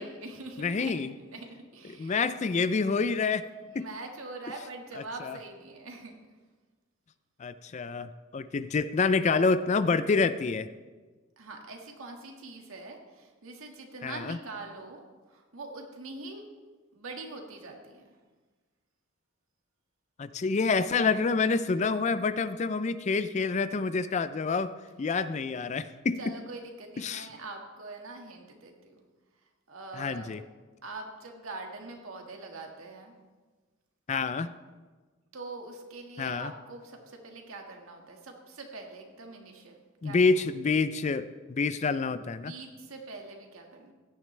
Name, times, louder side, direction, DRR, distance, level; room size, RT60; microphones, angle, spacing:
voice 1, 0.0-2.2 3.7-6.2 11.4-15.0 15.3-16.5 16.9-18.0 26.2-29.0 29.7-30.3 30.8-33.1 35.3-39.8 40.0-40.2 42.3-43.9, right 3 dB, 85° right, 2 dB, 1.8 m, -43 dB
voice 2, 0.6-1.1 2.0-3.5 3.7-3.9 5.2-5.4 7.4-10.7 14.0-14.4 20.2-24.7 25.0-26.4 27.0-27.3 29.9-30.4 34.1-34.5 36.2-36.5 40.0-42.5, left 4 dB, 35° left, 14 dB, 0.4 m, -27 dB
16.5 x 10.5 x 3.3 m, 1.4 s
head